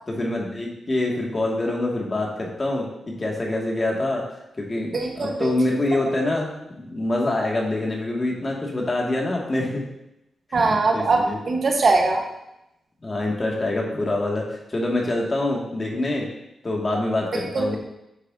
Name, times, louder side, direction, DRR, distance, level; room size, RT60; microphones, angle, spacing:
voice 1, 0.1-4.2 4.6-9.8 10.9-11.4 13.0-16.3 16.6-17.8, left 2 dB, 35° left, -2 dB, 2.2 m, -25 dB
voice 2, 4.9-5.5 10.5-12.2 17.3-17.8, right 3 dB, 55° right, 2 dB, 1.3 m, -21 dB
9.9 x 6.6 x 2.8 m, 0.86 s
cardioid pair, 65°, 0 cm